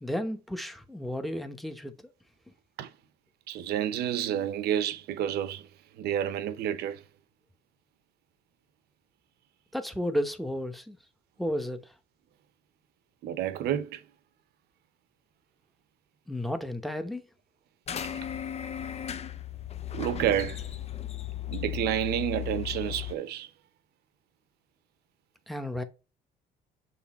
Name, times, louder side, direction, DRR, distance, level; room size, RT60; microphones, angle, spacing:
voice 1, 0.0-1.9 9.7-11.0 11.4-11.8 16.3-17.2 25.5-25.8, equal, ahead, 0.9 m, -32 dB
voice 2, 3.5-5.7 6.0-7.0 13.2-14.0 19.9-20.6 21.5-23.5, right 10 dB, 70° right, 0.8 m, -29 dB
sound 1, 17.9-23.1, left 11 dB, 40° left, 0.6 m, -36 dB
7.0 x 3.3 x 4.2 m
cardioid pair, 110°, 17 cm